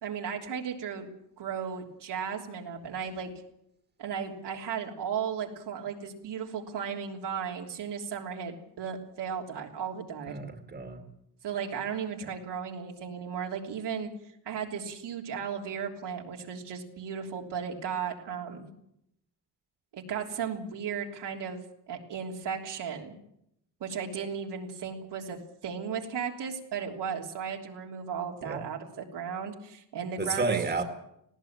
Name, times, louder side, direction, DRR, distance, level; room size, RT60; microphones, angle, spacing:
voice 1, 0.0-1.1 1.4-3.3 4.0-10.3 11.4-14.1 14.4-18.7 19.9-21.6 21.9-23.1 23.8-25.4 25.6-30.6, right 7 dB, 80° right, 1 dB, 3.3 m, -35 dB
voice 2, 10.3-11.0 28.4-28.6 30.2-30.8, right 4 dB, 25° right, 6 dB, 2.0 m, -31 dB
19.0 x 17.0 x 8.8 m, 0.78 s
wide cardioid pair, 165°, 40 cm